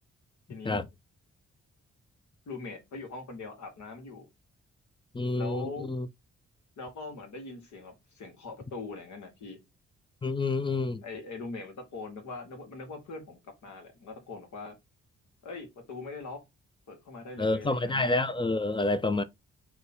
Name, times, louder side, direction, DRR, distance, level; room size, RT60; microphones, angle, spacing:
voice 1, 0.5-0.9 2.5-4.3 5.4-5.9 6.8-9.6 11.0-14.8 15.4-16.4 16.9-18.1, left 3 dB, 70° left, 1.2 m, -42 dB
voice 2, 5.1-6.1 10.2-11.0 17.4-19.2, left 2 dB, 15° left, 0.5 m, -28 dB
3.0 x 2.2 x 4.0 m
supercardioid pair, 50°, 30 cm